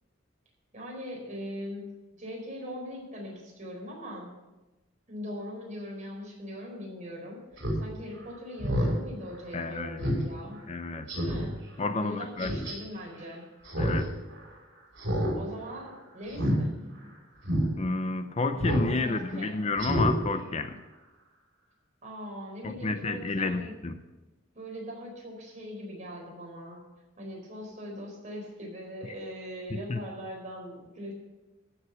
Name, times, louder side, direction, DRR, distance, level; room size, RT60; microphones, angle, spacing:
voice 1, 0.7-1.8 2.2-4.3 5.1-10.6 11.1-11.6 12.0-13.5 15.3-16.7 19.0-19.6 22.0-23.7 24.5-26.8 27.2-31.1, equal, 40° right, -1 dB, 4.4 m, -41 dB
Speech synthesizer, 7.6-7.8 8.2-8.3 8.6-8.9 9.3-9.4 10.0-10.2 10.6-10.7 11.1-11.4 12.4-12.7 13.6-14.0 14.3-14.4 15.0-15.3 15.6-15.8 16.3-16.6 17.0-17.1 17.4-17.6 18.6-18.9 19.2-19.3 19.8-20.1 20.5-20.6, equal, 65° right, 5.4 m, -27 dB
voice 2, 9.5-10.0 10.7-11.1 11.8-12.5 13.8-14.1 17.8-20.8 22.6-24.0 29.7-30.0, left 3 dB, 35° left, 9 dB, 0.6 m, -31 dB
14.5 x 7.2 x 6.8 m, 1.1 s
head